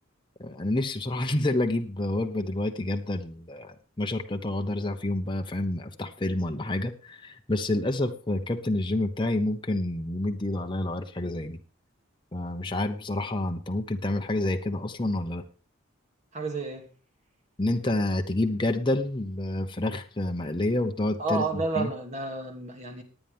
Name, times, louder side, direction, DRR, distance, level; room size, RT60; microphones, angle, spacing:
voice 1, 0.4-11.6 12.3-15.4 17.6-21.9, left 1 dB, 20° left, 4 dB, 0.9 m, -28 dB
voice 2, 16.3-16.9 21.2-23.0, right 3 dB, 35° right, 3 dB, 2.5 m, -31 dB
19.0 x 9.3 x 3.5 m, 0.35 s
head